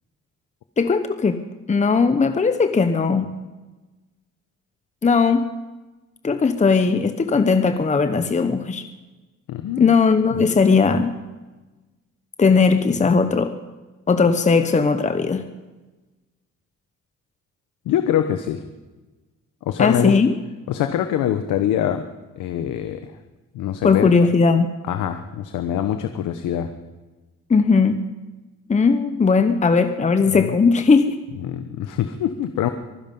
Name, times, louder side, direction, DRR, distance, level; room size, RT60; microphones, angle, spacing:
voice 1, 0.8-1.4 1.7-3.4 5.0-5.5 6.2-8.8 9.8-11.2 12.4-13.5 14.1-15.5 19.8-20.3 23.8-24.7 27.5-28.1 28.7-31.2, left 4 dB, 25° left, 9 dB, 0.9 m, -18 dB
voice 2, 9.5-9.9 10.4-10.6 17.8-18.6 19.6-20.2 20.7-22.1 22.4-23.1 23.5-24.1 24.9-26.7 31.4-32.7, left 10 dB, 85° left, 8 dB, 1.0 m, -24 dB
23.5 x 10.5 x 5.4 m, 1.2 s
cardioid pair, 90°, 30 cm